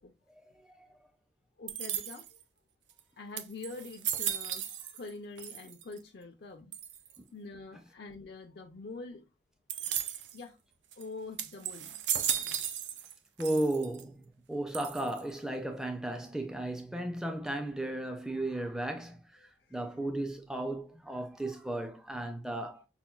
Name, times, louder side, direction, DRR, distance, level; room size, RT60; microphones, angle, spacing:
voice 1, 1.6-2.4 3.2-6.7 7.3-9.2 10.3-10.6 10.9-12.0 12.4-12.6 19.4-19.5, left 3 dB, 65° left, 0.5 m, -45 dB
sound 1, 1.7-2.4 3.0-3.1 3.4-5.1 5.4-6.0 6.7-7.2 9.7-10.4 10.9-11.0 11.4-13.1 13.4-14.0 14.7-15.3, right 9 dB, 85° right, 0.5 m, -35 dB
voice 2, 13.4-22.8, right 1 dB, 5° right, 0.4 m, -35 dB
5.7 x 2.2 x 2.3 m
head